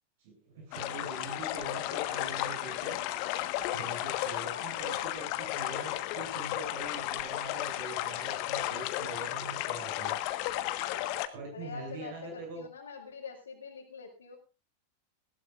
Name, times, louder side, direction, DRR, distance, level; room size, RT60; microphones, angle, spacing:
voice 1, 0.2-3.0 3.7-10.2 11.3-12.7, right 2 dB, 50° right, 2 dB, 7.8 m, -43 dB
sound 1, 0.7-11.3, left 15 dB, 45° left, 1.4 m, -34 dB
voice 2, 4.5-5.1 11.5-14.4, left 5 dB, 70° left, -4 dB, 3.7 m, -45 dB
19.5 x 16.5 x 2.5 m, 0.30 s
figure-of-eight pair, 90°, 0 cm